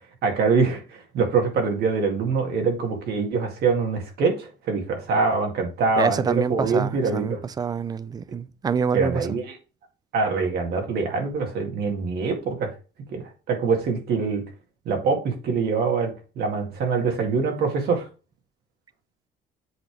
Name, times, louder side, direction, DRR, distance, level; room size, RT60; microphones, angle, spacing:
voice 1, 0.2-7.4 8.9-9.6 10.1-12.7 13.1-14.4 14.9-18.1, right 4 dB, 70° right, 2.1 m, -24 dB
voice 2, 6.0-9.3, right 6 dB, 25° right, 0.4 m, -26 dB
7.9 x 3.5 x 4.6 m
cardioid pair, 110°, 17 cm